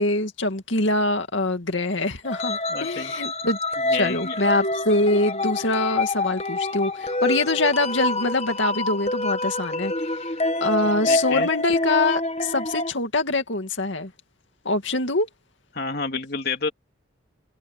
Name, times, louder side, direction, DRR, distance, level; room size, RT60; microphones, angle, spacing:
voice 1, 0.0-3.6 3.9-14.1 14.6-15.3, left 2 dB, 70° left, 2.4 m, -24 dB
sound 1, 2.2-12.9, left 2 dB, 35° left, 1.5 m, -26 dB
voice 2, 2.7-3.1 3.8-4.4 10.8-11.5 15.7-16.7, left 4 dB, 55° left, 2.8 m, -29 dB
head